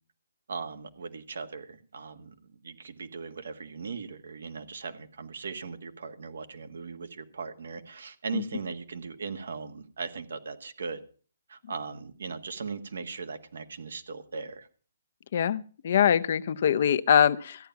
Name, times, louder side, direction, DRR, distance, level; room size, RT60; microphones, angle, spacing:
voice 1, 0.5-2.3 2.6-11.0 11.5-14.7, right 5 dB, 75° right, 9 dB, 1.5 m, -38 dB
voice 2, 15.3-17.6, left 8 dB, 50° left, 14 dB, 0.6 m, -23 dB
14.0 x 9.2 x 5.8 m, 0.41 s
hypercardioid pair, 155°, 0 cm